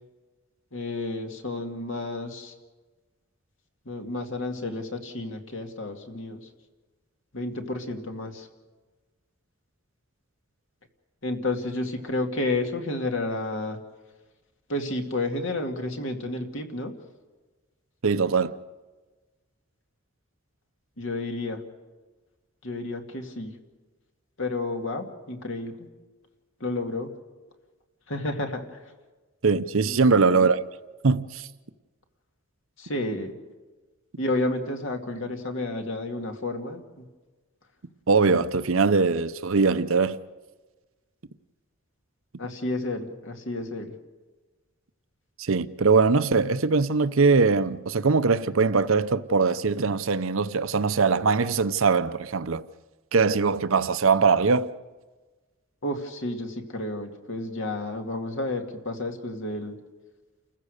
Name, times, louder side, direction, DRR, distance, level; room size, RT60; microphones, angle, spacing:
voice 1, 0.7-2.5 3.9-6.4 7.3-8.5 11.2-13.8 14.7-16.9 21.0-21.6 22.6-23.5 24.4-25.9 26.6-27.1 28.1-28.8 29.9-30.4 32.8-33.4 34.2-37.0 42.4-43.9 55.8-59.7, left 2 dB, 65° left, 2.4 m, -31 dB
voice 2, 18.0-18.5 29.4-30.6 31.0-31.5 38.1-40.2 45.4-52.6 53.1-54.7, right 4 dB, 70° right, 0.7 m, -21 dB
29.5 x 15.0 x 6.6 m
head